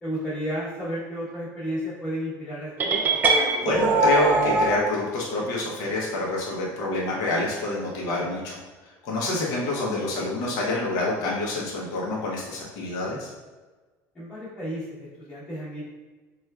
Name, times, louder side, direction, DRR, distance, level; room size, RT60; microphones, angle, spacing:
voice 1, 0.0-3.2 14.1-15.8, equal, 20° left, -11 dB, 1.0 m, -32 dB
sound 1, 2.8-4.8, right 3 dB, 25° right, 0.4 m, -21 dB
voice 2, 3.6-8.6 9.0-13.3, left 2 dB, 55° left, -4 dB, 0.7 m, -27 dB
4.3 x 2.3 x 2.2 m, 1.3 s
cardioid pair, 140°, 8 cm